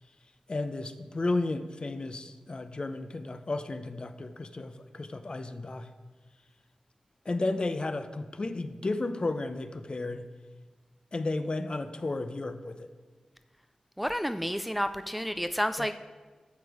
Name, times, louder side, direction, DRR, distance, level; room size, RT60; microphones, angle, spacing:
voice 1, 0.5-5.9 7.3-10.2 11.1-12.9 15.8-15.9, left 2 dB, 45° left, 10 dB, 0.7 m, -33 dB
voice 2, 14.0-16.0, equal, ahead, 9 dB, 0.4 m, -30 dB
11.5 x 7.0 x 4.8 m, 1.4 s
cardioid pair, 60°, 2 cm